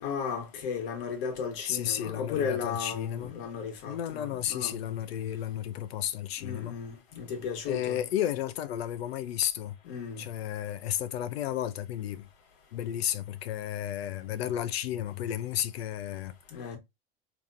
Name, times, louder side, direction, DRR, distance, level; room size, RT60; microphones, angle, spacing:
voice 1, 0.0-4.8 6.4-8.0 9.8-10.3 16.5-16.8, left 6 dB, 65° left, 1.4 m, -35 dB
voice 2, 1.6-3.3 3.9-6.8 7.7-9.8 10.2-12.3 12.7-16.7, left 11 dB, 85° left, 0.6 m, -33 dB
3.5 x 2.9 x 2.5 m
hypercardioid pair, 110°, 30 cm